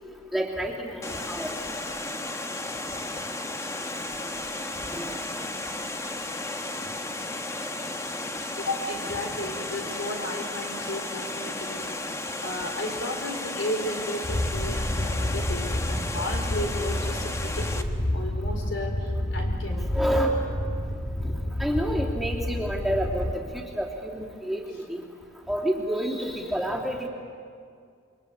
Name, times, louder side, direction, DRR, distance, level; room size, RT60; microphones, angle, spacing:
voice 1, 0.3-1.5 4.9-5.1 19.9-20.3 21.6-23.4 23.8-24.6 25.5-27.1, equal, ahead, -3 dB, 3.0 m, -28 dB
Water, 1.0-17.8, left 2 dB, 15° left, 1.2 m, -34 dB
voice 2, 8.6-12.0 12.4-17.9 18.1-20.0, left 1 dB, 75° left, 3 dB, 4.5 m, -34 dB
sound 1, 14.2-23.3, left 1 dB, 55° left, 2.8 m, -29 dB
28.0 x 23.5 x 8.4 m, 2.3 s
head